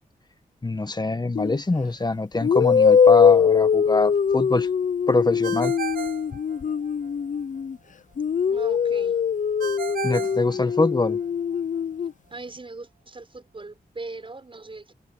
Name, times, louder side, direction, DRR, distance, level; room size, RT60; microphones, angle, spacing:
voice 1, 0.6-4.7 5.1-5.7 10.0-11.2, left 2 dB, 25° left, 1.4 m, -24 dB
sound 1, 1.4-1.6 2.4-7.8 8.2-12.1, left 7 dB, 55° left, 0.5 m, -21 dB
Ringtone, 5.4-7.1 9.6-11.3, right 6 dB, 80° right, 3.9 m, -34 dB
voice 2, 8.5-9.2 12.3-14.9, right 3 dB, 35° right, 6.1 m, -40 dB
wide cardioid pair, 85°, 16 cm